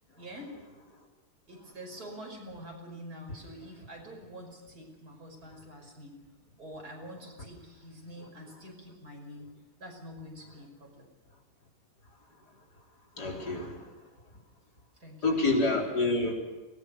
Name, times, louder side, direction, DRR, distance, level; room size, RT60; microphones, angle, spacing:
voice 1, 0.2-0.5 1.5-6.2 6.6-9.5 9.8-11.1 15.0-15.4, equal, 70° right, 1 dB, 6.2 m, -46 dB
voice 2, 13.2-13.8 15.2-16.3, left 2 dB, 90° left, 0 dB, 4.5 m, -27 dB
23.5 x 19.0 x 6.9 m, 1.1 s
omnidirectional pair, 1.7 m